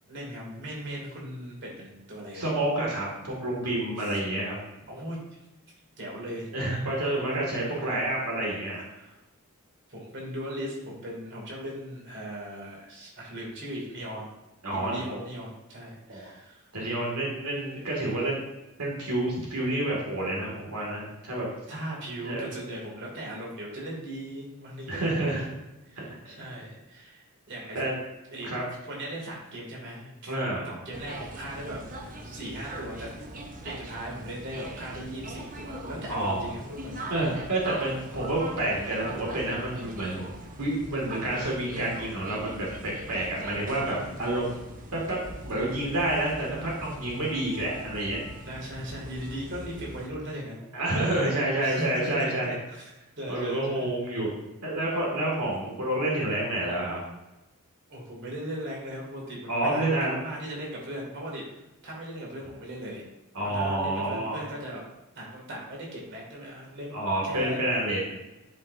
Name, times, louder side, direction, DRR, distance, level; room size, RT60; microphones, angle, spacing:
voice 1, 0.1-2.5 4.0-4.2 4.9-5.2 6.0-6.5 7.7-7.9 9.0-9.2 9.9-14.3 14.7-16.7 21.7-25.4 25.9-27.8 28.3-28.5 28.8-30.3 30.6-31.8 32.2-33.1 33.6-37.1 44.0-44.2 48.4-50.6 51.6-52.3 52.7-52.9 53.2-53.9 57.9-63.1 63.5-64.8 65.1-67.6, right 1 dB, 55° right, -3 dB, 2.5 m, -38 dB
voice 2, 2.3-4.6 6.5-8.8 14.6-15.2 16.1-16.2 16.7-18.4 18.8-21.5 22.2-22.5 24.9-25.5 27.7-28.0 28.4-28.6 30.3-30.7 36.1-36.4 37.1-40.2 40.6-44.5 44.9-45.2 45.4-48.2 50.7-52.5 53.3-54.3 54.6-57.0 59.5-60.2 63.3-64.4 66.9-68.1, right 1 dB, 85° right, -3 dB, 2.2 m, -29 dB
sound 1, 30.9-50.1, right 1 dB, 40° right, 1.0 m, -41 dB
12.0 x 5.5 x 2.7 m, 0.99 s
head